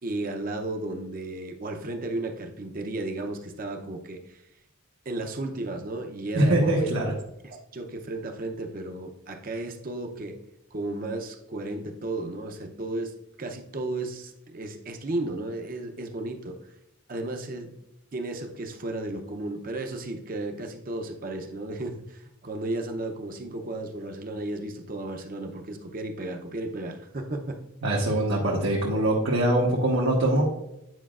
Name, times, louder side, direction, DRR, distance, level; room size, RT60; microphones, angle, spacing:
voice 1, 0.0-4.4 5.1-6.9 7.4-10.4 10.7-13.1 13.4-16.6 17.1-17.7 18.1-27.6, right 2 dB, 40° right, 4 dB, 0.6 m, -34 dB
voice 2, 6.3-7.1 27.8-30.4, right 1 dB, 75° right, -4 dB, 1.1 m, -23 dB
9.2 x 4.9 x 2.4 m, 0.86 s
head